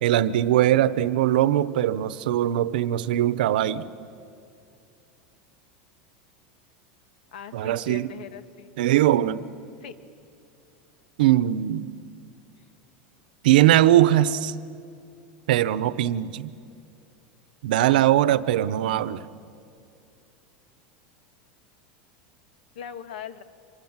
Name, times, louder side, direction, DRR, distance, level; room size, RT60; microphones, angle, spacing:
voice 1, 0.0-3.9 7.5-8.1 8.8-9.4 11.2-11.9 13.4-14.5 15.5-16.5 17.6-19.2, right 13 dB, 85° right, 16 dB, 0.9 m, -21 dB
voice 2, 7.3-8.8 9.8-9.9 22.7-23.4, left 8 dB, 90° left, 11 dB, 1.5 m, -40 dB
26.0 x 23.5 x 7.5 m, 2.5 s
supercardioid pair, 165°, 5 cm